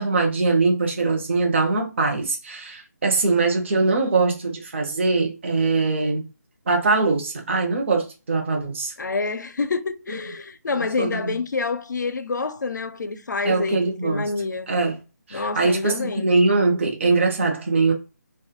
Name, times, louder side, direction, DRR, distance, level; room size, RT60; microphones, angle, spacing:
voice 1, 0.0-6.3 6.7-8.9 10.1-10.2 10.8-11.3 13.4-14.2 14.7-15.0 15.3-17.9, right 3 dB, 40° right, 0.6 m, -22 dB
voice 2, 9.0-14.7 15.3-16.3, left 4 dB, 80° left, 0.4 m, -27 dB
2.2 x 2.1 x 2.7 m
figure-of-eight pair, 160°, 10 cm